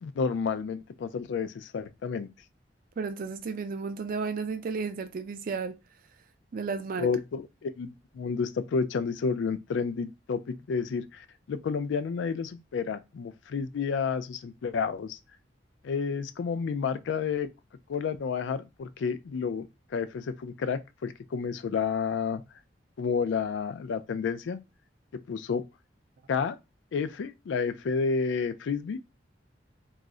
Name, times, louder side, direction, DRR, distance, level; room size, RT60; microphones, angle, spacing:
voice 1, 0.0-2.3 7.0-15.2 15.8-17.5 17.9-22.4 23.0-24.6 25.3-25.6 26.3-26.6 26.9-29.0, left 5 dB, 75° left, 0.3 m, -30 dB
voice 2, 3.0-5.8 6.5-7.1, right 4 dB, 50° right, 0.4 m, -33 dB
2.4 x 2.0 x 3.6 m
head